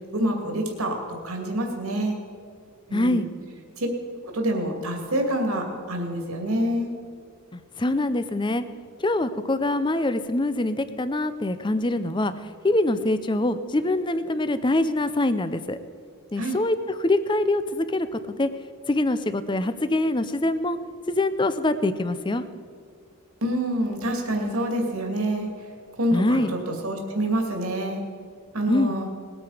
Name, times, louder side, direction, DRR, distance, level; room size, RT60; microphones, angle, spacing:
voice 1, 0.1-2.2 2.9-3.3 3.8-3.9 4.2-6.9 16.4-16.6 23.4-25.5 26.0-28.0 28.5-29.1, right 1 dB, 80° right, 2 dB, 2.4 m, -27 dB
voice 2, 2.9-3.3 7.5-8.6 9.0-12.3 12.6-15.8 16.3-18.5 18.9-20.8 21.1-22.4 26.1-26.5 28.7-28.9, left 2 dB, 20° left, 12 dB, 0.5 m, -24 dB
20.0 x 9.0 x 4.9 m, 2.3 s
head